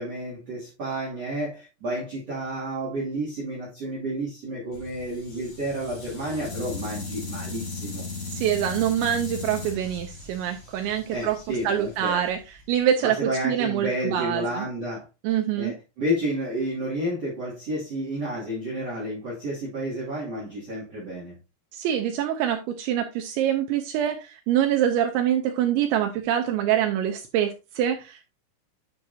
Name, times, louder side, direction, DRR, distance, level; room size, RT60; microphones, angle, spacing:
voice 1, 0.0-8.1 11.1-12.2 13.0-15.1 15.6-21.4, right 1 dB, 40° right, 2.7 m, -31 dB
sound 1, 4.7-12.8, left 4 dB, 35° left, 2.9 m, -37 dB
voice 2, 8.3-11.4 11.6-12.4 12.7-14.7 15.2-15.7 21.7-28.2, right 10 dB, 85° right, 2.6 m, -25 dB
9.4 x 5.7 x 2.7 m
omnidirectional pair, 6.0 m